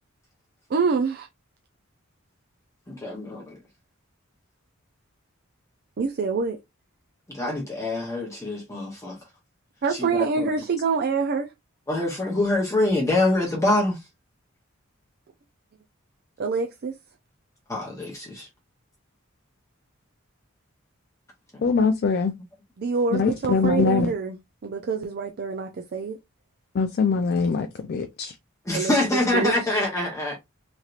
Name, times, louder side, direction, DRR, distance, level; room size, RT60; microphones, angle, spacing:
voice 1, 0.7-1.3 6.0-6.6 9.8-11.5 16.4-16.9 22.8-24.4 24.6-26.2 28.7-29.8, right 5 dB, 50° right, 0.4 m, -26 dB
voice 2, 2.9-3.6 7.3-9.2 9.9-10.5 11.9-14.0 17.7-18.5 21.5-21.6 28.7-30.4, left 2 dB, 15° left, 0.8 m, -25 dB
voice 3, 21.6-22.3 23.1-24.1 26.7-28.3, left 5 dB, 50° left, 0.4 m, -23 dB
3.1 x 2.8 x 2.4 m
head